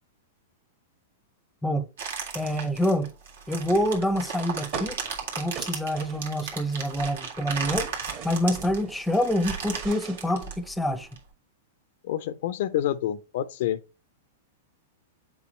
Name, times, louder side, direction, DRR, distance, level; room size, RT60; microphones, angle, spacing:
sound 1, 2.0-11.2, right 6 dB, 80° right, 1.9 m, -36 dB
voice 1, 2.3-3.1 3.5-5.0 5.4-7.9 8.2-11.1, equal, 5° left, 0.6 m, -26 dB
sound 2, 4.7-6.6 6.9-9.0 9.4-11.0, right 6 dB, 50° right, 1.9 m, -40 dB
voice 2, 12.0-13.8, left 12 dB, 65° left, 0.5 m, -28 dB
7.1 x 4.6 x 3.1 m
hypercardioid pair, 125°, 0 cm